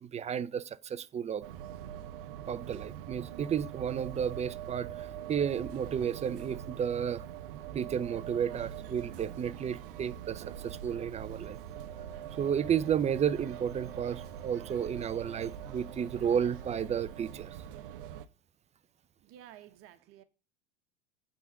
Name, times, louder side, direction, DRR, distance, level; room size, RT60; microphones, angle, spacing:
voice 1, 0.0-1.4 2.5-7.3 7.7-11.6 12.4-17.6, right 8 dB, 25° right, 0.5 m, -32 dB
sound 1, 1.4-18.3, right 10 dB, 65° right, 0.9 m, -43 dB
Wind instrument woodwind instrument, 11.9-17.6, right 1 dB, 10° left, 1.4 m, -57 dB
voice 2, 19.2-20.2, right 11 dB, 50° right, 1.2 m, -53 dB
9.2 x 3.8 x 7.1 m
hypercardioid pair, 90°, 29 cm